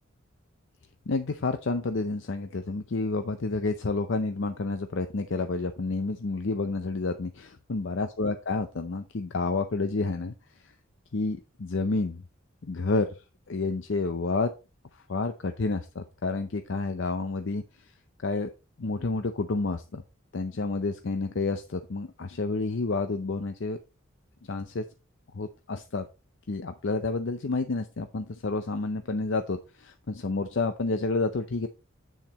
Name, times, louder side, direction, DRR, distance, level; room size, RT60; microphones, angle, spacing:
voice 1, 1.1-10.3 10.6-10.7 11.1-12.2 12.6-13.1 13.5-14.5 14.9-17.6 18.2-18.5 18.8-20.0 20.3-23.8 24.5-24.8 25.3-26.1 26.5-31.7, left 3 dB, 65° left, 8 dB, 0.6 m, -29 dB
8.0 x 7.2 x 2.9 m, 0.29 s
head